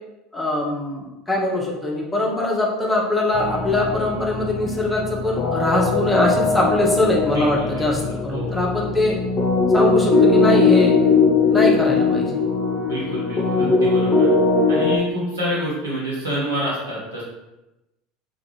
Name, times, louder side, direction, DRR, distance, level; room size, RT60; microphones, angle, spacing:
voice 1, 0.3-9.2 9.7-10.9 11.5-12.4 13.6-13.8, left 1 dB, 10° left, -3 dB, 0.7 m, -22 dB
sound 1, 3.3-15.0, left 4 dB, 35° left, 0.4 m, -20 dB
voice 2, 7.3-8.9 12.9-14.3 14.7-17.2, equal, 80° right, -6 dB, 1.0 m, -28 dB
2.4 x 2.3 x 3.0 m, 0.97 s
figure-of-eight pair, 70°, 0 cm